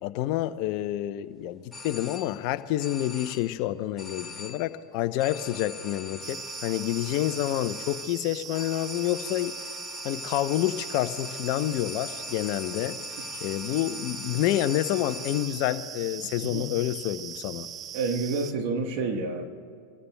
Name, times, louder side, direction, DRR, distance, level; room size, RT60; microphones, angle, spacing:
voice 1, 0.0-9.5 10.0-13.0 13.4-17.7, left 14 dB, 50° left, 12 dB, 0.7 m, -28 dB
sound 1, 1.7-2.5 2.8-3.6 4.0-4.8 5.2-15.7, left 4 dB, 10° left, 1.8 m, -41 dB
sound 2, 6.2-18.5, right 9 dB, 30° right, 0.3 m, -40 dB
voice 2, 17.9-19.4, right 4 dB, 55° right, 5 dB, 1.3 m, -29 dB
29.0 x 14.0 x 2.3 m, 2.2 s
hypercardioid pair, 105°, 0 cm